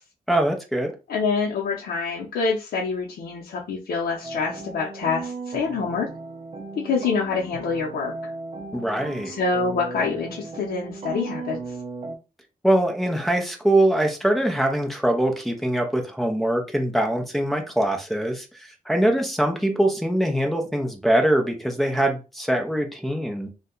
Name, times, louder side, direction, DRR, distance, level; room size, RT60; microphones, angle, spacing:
voice 1, 0.3-0.9 8.7-9.3 12.6-23.5, right 1 dB, ahead, 0.5 m, -23 dB
voice 2, 1.1-6.1 6.8-8.1 9.2-11.6, left 4 dB, 85° left, 0.6 m, -26 dB
sound 1, 4.2-12.2, right 3 dB, 40° right, 0.5 m, -36 dB
2.6 x 2.2 x 3.7 m
wide cardioid pair, 150°, 15 cm